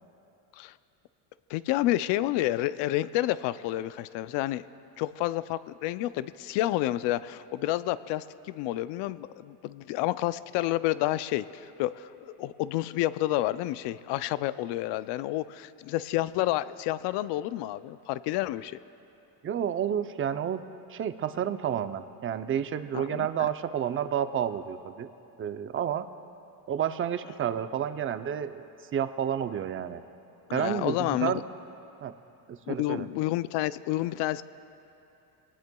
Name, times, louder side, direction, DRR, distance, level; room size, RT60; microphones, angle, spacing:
voice 1, 1.5-4.6 5.0-18.8 22.9-23.3 30.5-31.3 32.7-34.4, left 15 dB, 65° left, 15 dB, 0.5 m, -29 dB
voice 2, 19.4-20.6 20.9-25.1 25.4-26.0 26.7-28.6 28.9-30.0 30.5-31.4 32.0-32.1 32.5-33.1, right 9 dB, 30° right, 10 dB, 0.6 m, -30 dB
23.0 x 18.5 x 2.3 m, 2.8 s
supercardioid pair, 105°, 46 cm